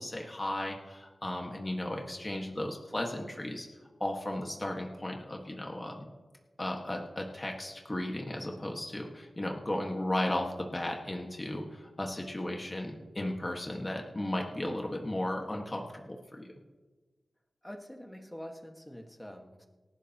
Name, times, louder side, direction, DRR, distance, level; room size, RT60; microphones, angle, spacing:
voice 1, 0.0-3.7 4.0-6.1 6.6-16.5, left 1 dB, 25° left, 0 dB, 1.6 m, -35 dB
voice 2, 17.6-19.7, equal, 10° left, 3 dB, 1.6 m, -45 dB
26.5 x 12.0 x 3.0 m, 1.3 s
wide cardioid pair, 95°, 0 cm